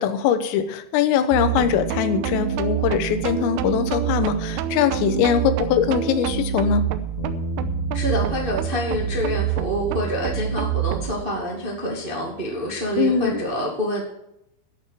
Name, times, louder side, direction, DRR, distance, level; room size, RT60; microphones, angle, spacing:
voice 1, 0.0-6.9 13.0-13.4, left 8 dB, 85° left, 10 dB, 3.5 m, -22 dB
sound 1, 1.3-11.2, right 10 dB, 85° right, 3.4 m, -26 dB
Bass guitar, 7.2-13.4, left 5 dB, 55° left, 2.7 m, -39 dB
voice 2, 7.9-14.0, equal, 65° right, -2 dB, 0.5 m, -26 dB
11.5 x 7.0 x 8.9 m, 0.81 s
omnidirectional pair, 5.9 m